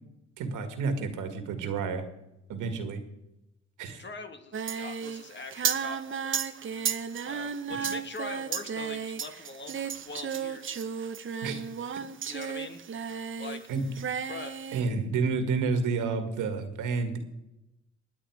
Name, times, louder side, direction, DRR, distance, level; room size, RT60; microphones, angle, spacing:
voice 1, 0.4-2.0 2.5-3.0 3.8-4.0 11.4-11.6 13.7-13.8 14.7-17.2, right 4 dB, 85° right, 7 dB, 2.0 m, -30 dB
voice 2, 4.0-6.4 7.3-10.8 12.3-12.8 13.4-13.7 14.3-14.6, left 3 dB, 35° left, 7 dB, 1.6 m, -42 dB
Singing, 4.5-13.7 13.9-14.8, right 7 dB, 40° right, 0.9 m, -34 dB
20.0 x 8.7 x 4.9 m, 0.89 s
cardioid pair, 90°, 30 cm